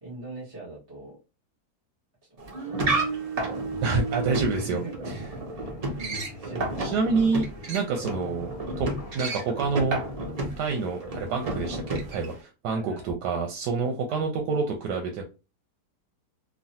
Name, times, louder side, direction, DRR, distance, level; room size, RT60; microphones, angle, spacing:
voice 1, 0.0-1.2 2.3-2.8 4.5-7.0 8.0-8.1 12.7-13.1 14.1-14.2, right 2 dB, 20° right, -6 dB, 0.8 m, -41 dB
sound 1, 2.4-12.4, right 2 dB, 70° right, 0.3 m, -32 dB
sound 2, 3.4-3.7 4.8-4.9 5.3-5.4 6.6-7.2 8.1-8.2 9.9-10.3, right 2 dB, 50° right, 1.0 m, -32 dB
Walk footsteps, 3.7-10.4, left 3 dB, 65° left, 0.9 m, -47 dB
voice 2, 3.8-4.8 6.8-8.5 8.8-8.9 9.1-10.0 10.6-15.2, right 4 dB, 90° right, 2 dB, 1.2 m, -27 dB
3.1 x 2.2 x 2.7 m, 0.30 s
omnidirectional pair, 1.7 m